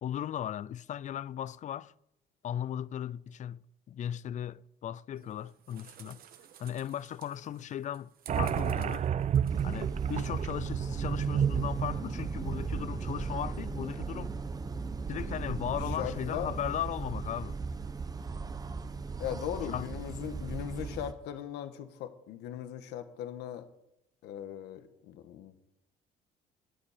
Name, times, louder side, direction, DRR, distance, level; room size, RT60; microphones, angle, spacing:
voice 1, 0.0-1.9 2.4-3.6 3.9-6.2 6.6-8.1 8.4-9.1 9.6-14.3 15.1-17.6 19.7-19.9, left 10 dB, 45° left, 0.5 m, -37 dB
sound 1, 5.1-10.1, right 9 dB, 60° right, 1.3 m, -56 dB
sound 2, 8.3-13.5, right 8 dB, 45° right, 0.6 m, -31 dB
sound 3, 9.5-21.1, right 4 dB, 20° right, 1.0 m, -37 dB
voice 2, 16.0-16.6 19.2-23.7 24.2-25.6, left 10 dB, 85° left, 1.4 m, -39 dB
22.0 x 8.6 x 5.0 m
cardioid pair, 110°, 17 cm